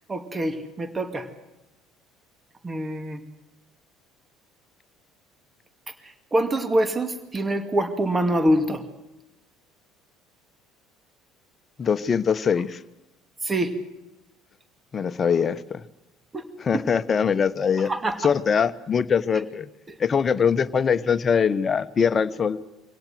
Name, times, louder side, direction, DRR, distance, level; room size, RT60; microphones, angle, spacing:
voice 1, 0.1-1.3 2.6-3.2 6.0-8.8 13.4-13.7 16.3-16.4 16.7-16.8 17.8-18.2 19.9-20.0, right 1 dB, 25° right, 9 dB, 2.5 m, -25 dB
voice 2, 11.8-12.8 14.9-15.8 16.6-17.9 18.2-19.7 20.0-22.6, left 6 dB, 35° left, 12 dB, 1.1 m, -22 dB
24.5 x 17.5 x 7.9 m, 0.97 s
hypercardioid pair, 65°, 0 cm